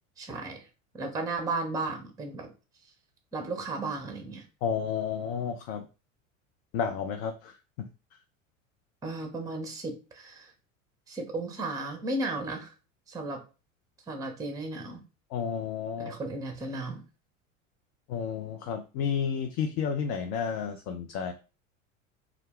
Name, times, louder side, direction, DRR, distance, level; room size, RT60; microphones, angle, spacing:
voice 1, 0.2-0.7 0.9-2.5 3.3-4.4 9.0-10.5 11.1-12.7 13.1-13.4 14.1-15.0 16.0-17.0, right 2 dB, 10° right, 4 dB, 0.6 m, -34 dB
voice 2, 4.6-5.9 6.7-8.2 15.3-16.1 18.1-21.3, left 7 dB, 50° left, 6 dB, 0.5 m, -32 dB
2.3 x 2.1 x 3.4 m, 0.32 s
hypercardioid pair, 75°, 39 cm